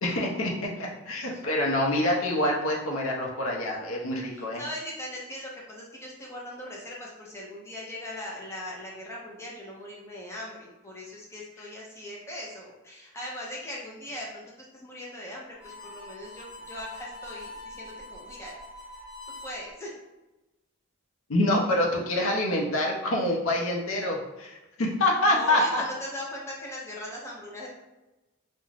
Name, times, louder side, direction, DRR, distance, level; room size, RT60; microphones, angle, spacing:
voice 1, 0.0-4.6 21.3-25.8, left 1 dB, 70° left, -1 dB, 0.6 m, -26 dB
voice 2, 4.3-18.5 19.4-19.9 25.3-27.7, left 1 dB, 15° left, -4 dB, 0.6 m, -40 dB
Harmonica, 15.5-19.6, left 2 dB, 50° left, 0.9 m, -44 dB
2.4 x 2.1 x 3.2 m, 1.0 s
head